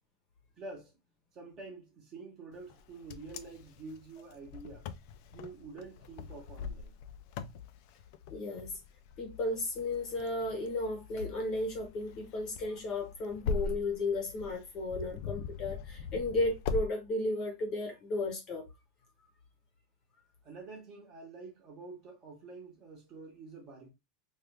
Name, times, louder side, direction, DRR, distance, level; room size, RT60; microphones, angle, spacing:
voice 1, 0.6-0.9 1.3-4.9 5.3-7.0 20.4-23.9, right 3 dB, 25° right, 0.9 m, -47 dB
Wind, 2.7-16.9, left 5 dB, 40° left, 0.3 m, -41 dB
voice 2, 8.3-8.7 9.2-18.7, left 2 dB, 25° left, 0.8 m, -34 dB
3.1 x 2.3 x 3.2 m
supercardioid pair, 180°, 2 cm